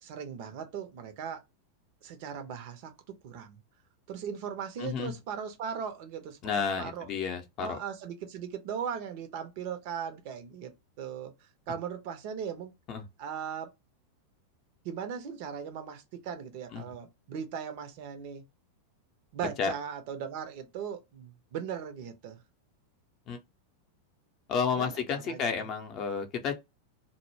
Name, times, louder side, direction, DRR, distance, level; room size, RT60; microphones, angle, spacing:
voice 1, 0.0-1.4 2.0-3.6 4.1-7.1 7.6-11.3 11.7-12.7 13.2-13.7 14.8-18.4 19.3-22.4 24.7-25.5, right 7 dB, 45° right, 0.5 m, -38 dB
voice 2, 4.8-5.1 6.4-7.8 12.9-13.0 16.7-16.8 19.6-19.7 23.3-23.4 24.5-26.6, left 6 dB, 35° left, 0.6 m, -31 dB
2.1 x 2.0 x 3.1 m
figure-of-eight pair, 90°, 0 cm